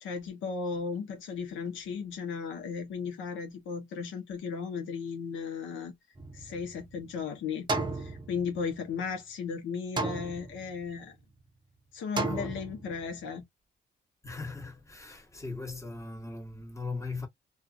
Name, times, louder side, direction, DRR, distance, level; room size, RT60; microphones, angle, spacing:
voice 1, 0.0-5.9 6.3-7.7 8.0-11.1 11.9-13.4, left 5 dB, 75° left, 0.9 m, -35 dB
sound 1, 6.2-7.1 7.7-8.9 10.0-10.9 12.2-13.1, right 2 dB, 20° right, 0.7 m, -34 dB
voice 2, 12.2-12.6 14.2-17.3, left 3 dB, 15° left, 1.2 m, -39 dB
2.4 x 2.4 x 2.6 m
cardioid pair, 90°, 20 cm